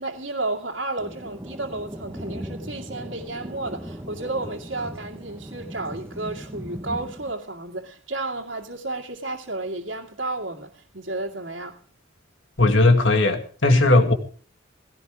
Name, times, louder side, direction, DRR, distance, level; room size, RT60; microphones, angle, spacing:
voice 1, 0.0-11.8, right 2 dB, 65° right, 2.3 m, -32 dB
Thunder, 1.0-7.3, equal, 15° right, 1.3 m, -38 dB
voice 2, 12.6-14.1, left 2 dB, 65° left, 2.1 m, -17 dB
17.5 x 17.0 x 3.7 m
head